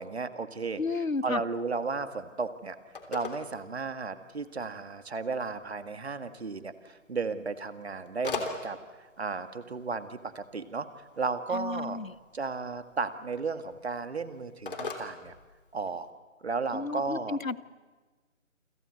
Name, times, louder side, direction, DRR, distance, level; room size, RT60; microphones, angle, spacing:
voice 1, 0.0-0.8 1.2-2.8 3.1-8.8 9.2-10.9 11.2-12.0 12.3-15.3 15.7-16.1 16.4-17.4, right 4 dB, 50° right, 11 dB, 1.9 m, -34 dB
voice 2, 0.8-1.4 11.5-12.1 16.7-17.6, left 3 dB, 80° left, 17 dB, 1.2 m, -32 dB
Telephone, 1.6-16.1, left 4 dB, 40° left, 3.4 m, -44 dB
28.5 x 25.5 x 7.8 m, 1.3 s
figure-of-eight pair, 150°, 40 cm